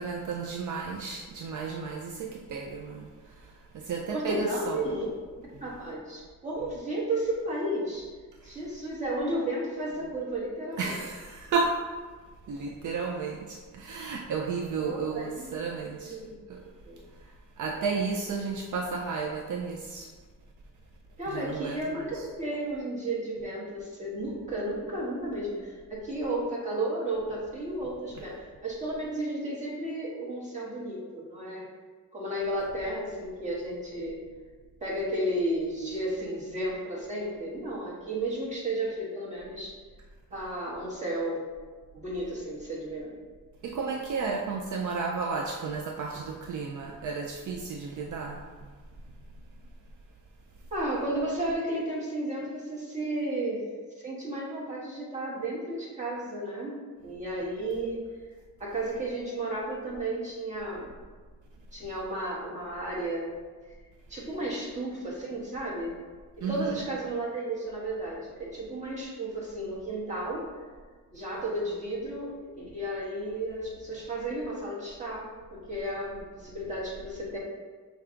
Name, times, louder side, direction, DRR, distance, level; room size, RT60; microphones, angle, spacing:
voice 1, 0.0-4.8 10.8-11.8 12.5-16.2 16.5-16.6 17.6-20.1 21.3-22.2 43.6-48.4 66.4-66.8, right 4 dB, 65° right, 0 dB, 0.4 m, -33 dB
voice 2, 4.1-5.1 5.6-8.1 8.4-11.0 14.8-15.6 16.0-16.4 16.9-17.0 21.2-31.7 32.1-34.2 34.8-39.7 40.3-41.4 41.9-43.1 50.7-53.6 54.0-58.1 58.6-60.9 61.7-63.3 64.1-66.0 66.4-70.4 71.1-77.4, right 1 dB, 20° right, -6 dB, 1.3 m, -33 dB
5.6 x 2.3 x 3.7 m, 1.4 s
wide cardioid pair, 130°, 32 cm